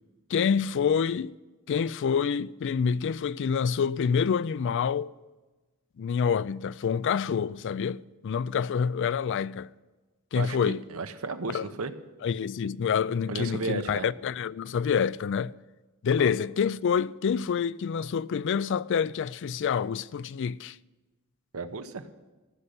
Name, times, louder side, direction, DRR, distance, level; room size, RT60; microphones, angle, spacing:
voice 1, 0.3-1.3 1.7-5.1 6.0-9.7 10.3-10.8 11.5-11.7 12.2-15.5 16.0-20.8, left 6 dB, 55° left, 0.3 m, -27 dB
voice 2, 10.4-11.9 13.3-14.1 16.2-16.3 21.5-22.0, right 3 dB, 75° right, 1.0 m, -34 dB
14.0 x 6.7 x 9.9 m
head